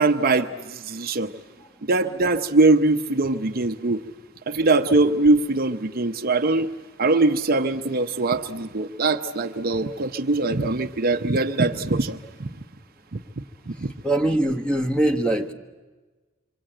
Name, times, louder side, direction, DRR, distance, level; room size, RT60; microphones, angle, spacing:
voice 1, 0.0-1.3 1.9-4.0 4.5-6.7 7.0-12.5 13.1-13.2 13.7-13.9, right 2 dB, 45° right, 7 dB, 0.8 m, -22 dB
voice 2, 14.0-15.5, right 1 dB, 5° left, 4 dB, 1.5 m, -22 dB
26.5 x 25.0 x 9.0 m, 1.3 s
head